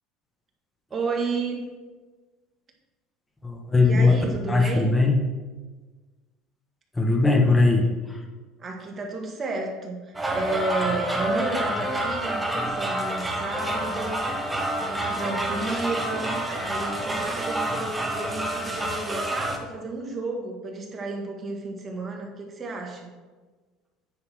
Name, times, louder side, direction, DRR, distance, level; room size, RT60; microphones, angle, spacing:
voice 1, 0.9-1.7 3.8-4.9 8.6-14.2 14.9-23.1, right 3 dB, 30° right, 1 dB, 1.7 m, -32 dB
voice 2, 3.4-4.1 4.5-5.2 7.0-8.2, left 3 dB, 10° left, 2 dB, 1.3 m, -20 dB
sound 1, 10.1-19.6, right 1 dB, 10° right, 1.1 m, -28 dB
9.7 x 4.0 x 6.3 m, 1.3 s
cardioid pair, 130°, 0 cm